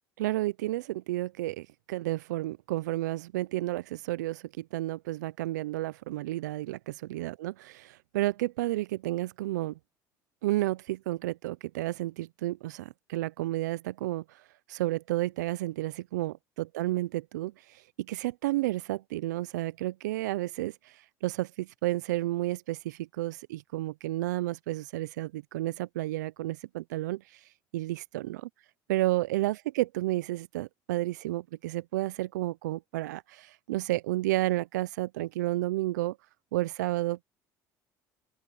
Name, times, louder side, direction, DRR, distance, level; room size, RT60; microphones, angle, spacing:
voice 1, 0.2-9.8 10.4-14.4 14.7-27.4 27.7-28.4 28.9-36.2 36.5-37.2, right 17 dB, 90° right, 0.4 m, -31 dB
open air
hypercardioid pair, 70°, 9 cm